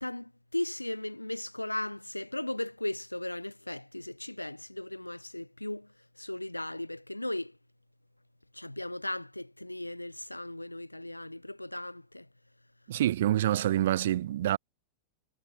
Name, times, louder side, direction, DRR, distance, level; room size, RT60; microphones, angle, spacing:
voice 1, 0.0-5.9 6.2-7.5 8.5-12.3, left 1 dB, 85° left, 0.9 m, -37 dB
voice 2, 12.9-14.6, right 13 dB, 60° right, 0.4 m, -26 dB
figure-of-eight pair, 90°, 0 cm